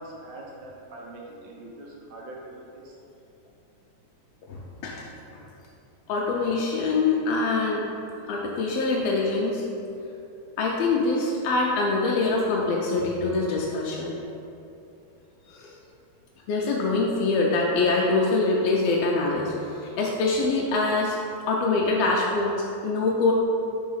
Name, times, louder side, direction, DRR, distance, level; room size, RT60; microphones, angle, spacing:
voice 1, 0.0-2.9, right 1 dB, 85° right, -3 dB, 2.4 m, -42 dB
voice 2, 4.5-5.4 6.1-7.9 8.3-9.6 10.6-14.1 15.5-15.7 16.5-21.2 21.5-23.3, left 3 dB, 80° left, -2 dB, 1.4 m, -24 dB
4.7 x 4.1 x 5.5 m, 2.7 s
omnidirectional pair, 3.4 m